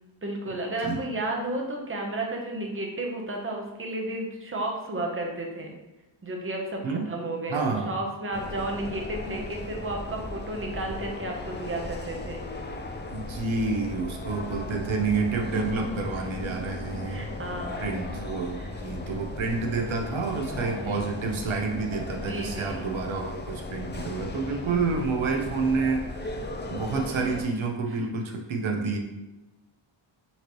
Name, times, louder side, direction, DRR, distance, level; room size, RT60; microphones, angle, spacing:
voice 1, 0.2-5.7 6.2-12.4 16.4-17.9 18.5-18.7 19.1-19.2 20.6-21.1 22.2-22.9 24.6-24.8 27.9-28.0, right 1 dB, 25° right, 0 dB, 0.8 m, -33 dB
voice 2, 7.5-7.9 13.1-17.3 17.8-29.0, right 4 dB, 75° right, 2 dB, 0.9 m, -29 dB
sound 1, 8.3-27.4, left 2 dB, 25° left, 0.4 m, -37 dB
5.6 x 3.1 x 3.0 m, 1.0 s
wide cardioid pair, 130°, 47 cm